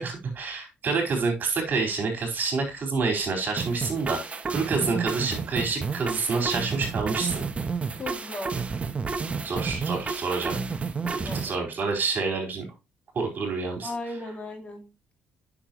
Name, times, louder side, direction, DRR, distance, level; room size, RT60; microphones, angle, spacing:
voice 1, 0.0-7.4 9.4-10.6 11.4-12.6 13.1-13.9, right 4 dB, 50° right, 2 dB, 4.1 m, -28 dB
sound 1, 3.6-11.6, right 5 dB, 30° right, 1.0 m, -31 dB
voice 2, 8.0-8.6 11.2-11.6 13.8-14.9, left 2 dB, 35° left, 4 dB, 2.4 m, -36 dB
8.8 x 6.5 x 3.0 m, 0.26 s
cardioid pair, 90°, 4 cm